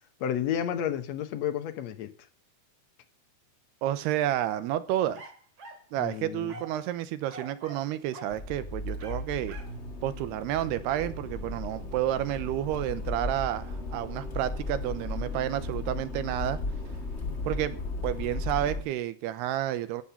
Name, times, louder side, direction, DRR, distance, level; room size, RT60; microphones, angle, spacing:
voice 1, 0.2-2.1 6.0-6.6, left 9 dB, 70° left, 1.7 m, -31 dB
voice 2, 3.8-5.2 5.9-9.6 10.0-16.6 17.5-17.8 18.0-20.0, right 12 dB, 90° right, 3.0 m, -30 dB
sound 1, 5.1-5.9 6.5-6.8 7.3-7.9 8.1-8.4 9.0-9.8 10.9-11.1, right 3 dB, 40° right, 3.2 m, -45 dB
Accelerating revving vroom, 8.3-18.8, left 2 dB, 40° left, 0.9 m, -36 dB
14.0 x 8.9 x 5.7 m
omnidirectional pair, 4.6 m